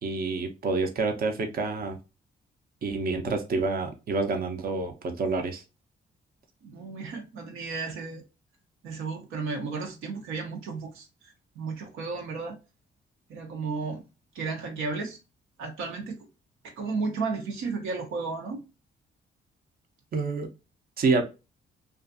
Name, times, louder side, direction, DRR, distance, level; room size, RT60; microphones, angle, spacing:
voice 1, 0.0-2.0 2.8-5.6 20.1-20.5 21.0-21.3, right 3 dB, 50° right, 0.6 m, -28 dB
voice 2, 6.6-8.2 8.8-12.6 13.3-14.0 14.3-15.2 15.6-16.2 16.6-18.6, right 4 dB, 90° right, 0.7 m, -33 dB
2.5 x 2.4 x 2.4 m
cardioid pair, 70°, 20 cm